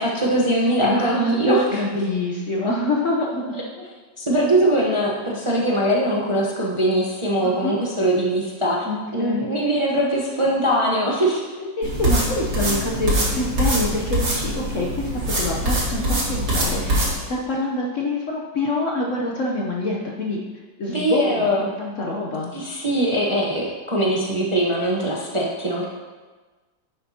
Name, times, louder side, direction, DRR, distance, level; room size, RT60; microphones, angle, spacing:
voice 1, 0.0-1.6 3.5-3.6 4.2-8.8 9.1-11.4 20.9-21.7 22.5-25.8, right 1 dB, 25° right, -4 dB, 0.8 m, -21 dB
voice 2, 0.8-3.9 7.4-7.8 8.8-9.4 11.6-17.0 17.3-20.4 20.8-22.5, left 2 dB, 55° left, -2 dB, 0.9 m, -26 dB
sound 1, 11.8-17.1, right 1 dB, 65° right, 3.0 m, -23 dB
10.5 x 7.8 x 2.8 m, 1.3 s
omnidirectional pair, 2.1 m